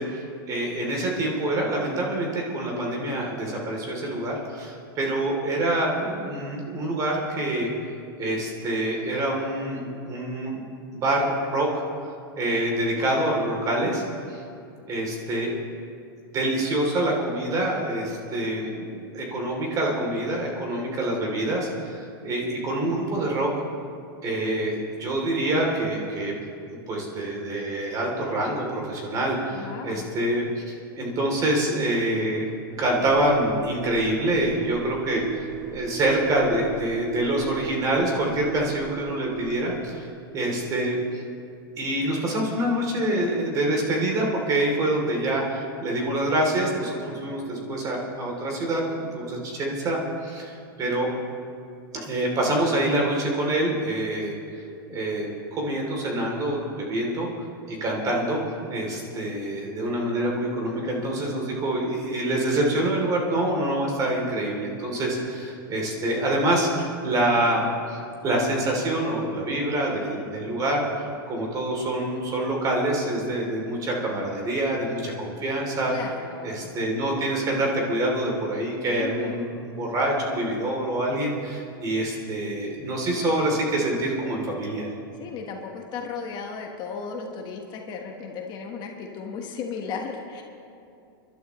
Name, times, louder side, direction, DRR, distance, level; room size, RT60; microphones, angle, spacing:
voice 1, 0.0-7.7 8.2-10.6 10.9-11.8 12.4-14.0 14.3-14.4 14.9-15.5 16.3-23.5 24.2-26.3 26.6-32.5 32.8-41.2 41.8-48.8 49.1-51.1 51.9-57.3 57.7-70.9 71.3-75.9 76.4-84.9, right 1 dB, 30° right, -1 dB, 3.1 m, -26 dB
voice 2, 29.5-30.1 75.8-76.7 78.9-79.5 85.2-90.4, left 5 dB, 35° left, 2 dB, 1.4 m, -35 dB
sound 1, 32.7-40.5, right 9 dB, 55° right, 1.3 m, -38 dB
28.0 x 12.0 x 3.2 m, 2.5 s
supercardioid pair, 135°, 13 cm